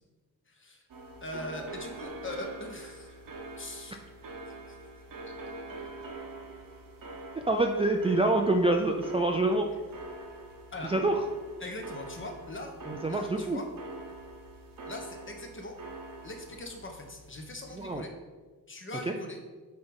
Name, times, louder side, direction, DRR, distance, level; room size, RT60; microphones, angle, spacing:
voice 1, 0.5-0.8 1.2-3.2 3.6-4.0 4.7-4.8 5.8-5.9 10.7-10.9 11.6-12.7 13.1-13.6 14.9-15.8 16.2-18.1 18.7-19.4, left 1 dB, 30° left, 3 dB, 1.0 m, -41 dB
sound 1, 0.9-17.9, right 2 dB, 60° right, 1.0 m, -45 dB
voice 2, 7.5-9.7 10.8-11.2 12.9-13.6 17.7-18.1 19.1-19.2, right 2 dB, 15° right, 3 dB, 0.3 m, -26 dB
8.0 x 3.4 x 5.3 m, 1.4 s
wide cardioid pair, 140°, 39 cm